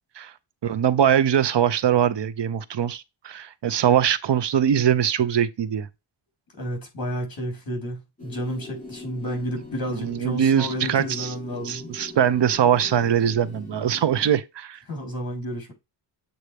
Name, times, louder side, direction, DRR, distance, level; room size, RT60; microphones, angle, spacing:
voice 1, 0.6-5.9 10.0-11.3 11.6-14.8, right 9 dB, 70° right, 0.7 m, -22 dB
voice 2, 6.6-11.9 14.9-15.7, equal, 50° left, 3.8 m, -31 dB
sound 1, 8.2-14.4, left 2 dB, 15° left, 2.4 m, -41 dB
8.1 x 3.9 x 3.4 m
wide cardioid pair, 140°, 44 cm